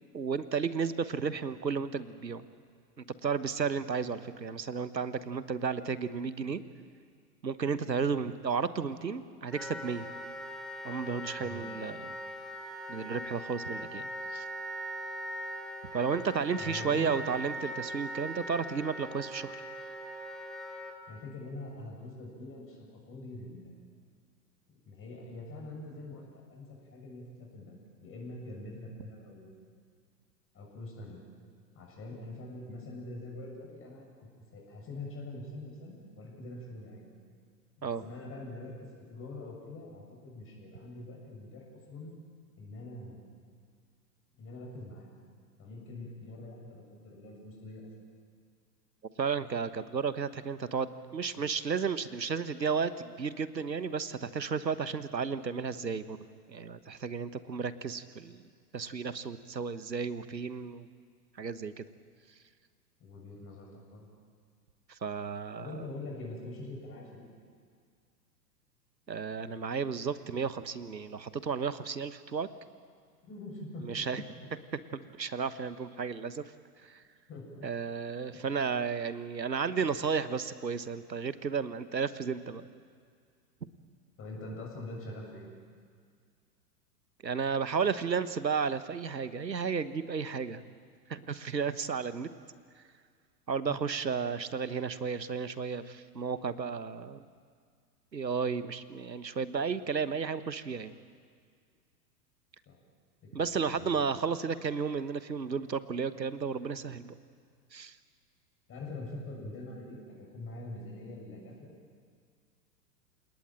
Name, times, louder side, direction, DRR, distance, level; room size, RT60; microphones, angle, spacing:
voice 1, 0.1-2.4 3.0-6.6 7.4-10.1 10.8-12.1 12.9-14.4 15.9-19.6 37.8-38.0 49.2-56.2 56.5-58.5 58.7-60.9 61.4-61.8 64.9-65.7 69.1-72.5 73.8-74.2 74.9-76.4 76.8-77.0 77.6-82.6 87.2-90.6 91.1-92.3 93.5-97.2 98.1-100.9 103.3-107.1 107.7-108.0, right 5 dB, 90° right, 14 dB, 1.3 m, -33 dB
Wind instrument woodwind instrument, 9.5-20.9, right 1 dB, ahead, 2.5 m, -40 dB
voice 2, 16.6-17.2 21.1-23.9 24.9-29.7 30.5-31.2 31.7-37.1 37.8-42.1 42.6-43.3 44.4-45.1 45.6-47.9 63.0-64.1 65.6-67.3 73.2-73.9 74.1-74.2 77.3-77.6 78.3-78.7 84.2-85.5 93.6-93.8 102.7-102.8 103.2-104.0 108.7-111.7, left 2 dB, 25° left, -1 dB, 7.0 m, -44 dB
29.0 x 18.5 x 9.0 m, 2.1 s
figure-of-eight pair, 105°, 50 cm